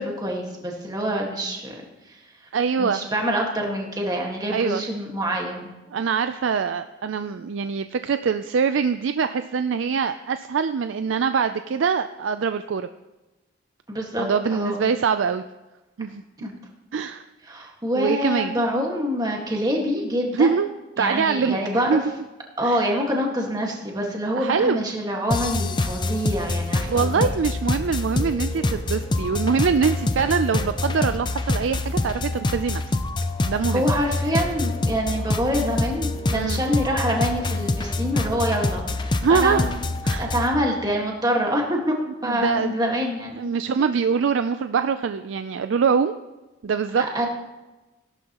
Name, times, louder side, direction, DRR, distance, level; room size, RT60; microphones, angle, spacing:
voice 1, 0.0-1.7 2.8-5.7 13.9-14.3 14.5-14.8 16.4-16.5 17.5-20.5 21.0-22.0 22.6-27.3 33.7-39.8 40.2-42.0 42.2-43.5 43.8-43.9 47.1-47.3, equal, 20° right, 0 dB, 1.7 m, -26 dB
voice 2, 2.5-3.0 4.5-4.8 5.9-12.9 14.2-15.4 16.0-16.2 16.9-17.2 17.9-18.6 20.3-20.7 21.0-22.0 22.6-22.8 24.4-24.8 26.9-32.8 33.5-33.9 36.3-36.6 39.2-39.7 40.0-40.3 42.2-42.7 43.4-46.1 46.6-47.0, right 6 dB, 75° right, 10 dB, 0.4 m, -23 dB
sound 1, 25.3-40.5, left 2 dB, 25° left, 0.5 m, -26 dB
17.0 x 12.0 x 3.0 m, 1.1 s
head